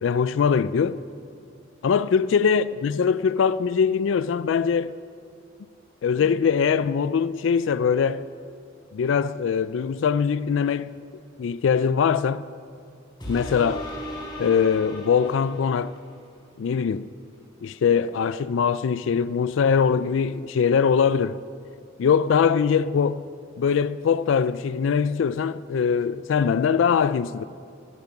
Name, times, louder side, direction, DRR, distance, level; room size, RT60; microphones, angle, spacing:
voice 1, 0.0-1.0 1.8-4.9 6.0-8.3 8.9-10.9 11.4-12.4 13.3-13.9 14.4-15.9 16.6-17.1 17.6-21.4 22.0-23.2 23.6-27.4, left 6 dB, 85° left, 0.4 m, -22 dB
sound 1, 13.2-16.1 16.7-16.8, equal, 25° left, 4.0 m, -37 dB
18.0 x 10.5 x 5.9 m
head